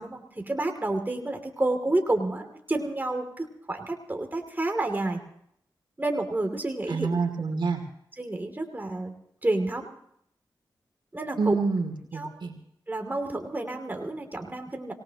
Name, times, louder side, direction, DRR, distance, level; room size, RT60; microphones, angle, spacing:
voice 1, 0.0-5.2 6.0-7.2 8.2-9.1 9.4-9.9 11.1-11.6 12.1-12.3 12.9-14.9, right 2 dB, 20° right, 4 dB, 2.7 m, -29 dB
voice 2, 6.9-7.8 11.4-12.5, right 4 dB, 70° right, 4 dB, 2.7 m, -27 dB
25.5 x 18.5 x 3.0 m, 0.71 s
cardioid pair, 60°, 8 cm